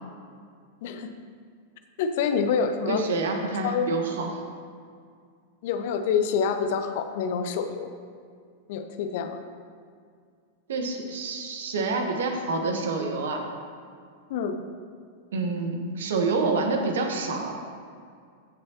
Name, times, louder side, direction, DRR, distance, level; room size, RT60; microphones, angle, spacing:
voice 1, 0.8-1.1 2.0-3.0 3.6-4.0 5.6-7.9 8.7-9.4 14.3-14.6, left 6 dB, 50° left, 8 dB, 0.7 m, -27 dB
voice 2, 2.9-4.4 10.7-13.4 15.3-17.6, right 3 dB, 60° right, 3 dB, 1.2 m, -27 dB
15.0 x 6.4 x 3.0 m, 2.2 s
figure-of-eight pair, 90°, 0 cm